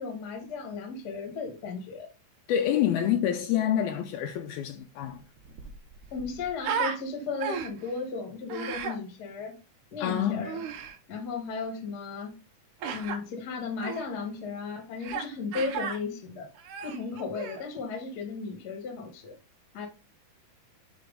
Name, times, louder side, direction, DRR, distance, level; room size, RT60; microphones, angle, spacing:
voice 1, 0.0-2.1 6.1-9.6 9.9-10.6 11.1-12.3 12.9-16.5 16.8-19.3 19.7-19.9, left 4 dB, 45° left, 1.3 m, -35 dB
voice 2, 2.5-5.2 10.0-10.6, left 10 dB, 80° left, 1.8 m, -27 dB
Human voice, 5.0-5.1 5.4-7.0 7.4-7.9 8.5-9.0 10.4-11.0 12.8-13.2 13.8-14.0 15.0-15.3 15.5-16.0 16.6-17.7, right 6 dB, 80° right, 2.3 m, -34 dB
6.0 x 3.2 x 5.1 m
omnidirectional pair, 3.7 m